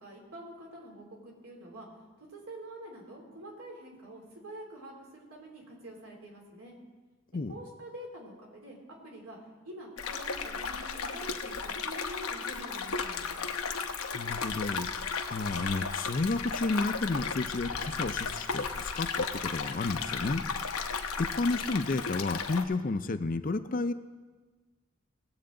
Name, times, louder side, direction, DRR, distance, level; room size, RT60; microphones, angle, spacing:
voice 1, 0.0-1.9 2.2-6.7 7.5-9.4 9.6-11.5 11.8-13.4, right 1 dB, 85° right, -1 dB, 3.1 m, -46 dB
sound 1, 10.0-22.6, left 5 dB, 90° left, 0.8 m, -35 dB
voice 2, 14.1-14.9 15.3-20.4 21.2-23.9, left 3 dB, 40° left, 11 dB, 0.4 m, -31 dB
18.5 x 7.9 x 3.8 m, 1.3 s
head